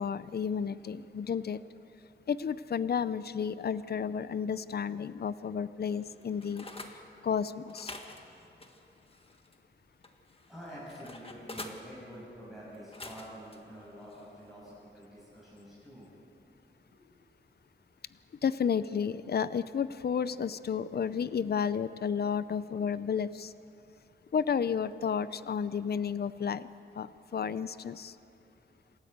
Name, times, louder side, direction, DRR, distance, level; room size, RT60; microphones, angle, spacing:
voice 1, 0.0-1.6 2.3-6.7 7.2-7.9 18.4-23.5 24.3-26.7 27.0-28.1, left 7 dB, 55° left, 15 dB, 0.5 m, -32 dB
sound 1, 5.9-7.0 7.6-9.6 10.0-11.8 12.7-13.6 14.1-14.3, left 2 dB, 30° left, 1.6 m, -47 dB
voice 2, 10.5-16.1 16.8-17.1, equal, ahead, -8 dB, 6.5 m, -48 dB
27.5 x 13.0 x 8.1 m, 2.8 s
wide cardioid pair, 115°, 19 cm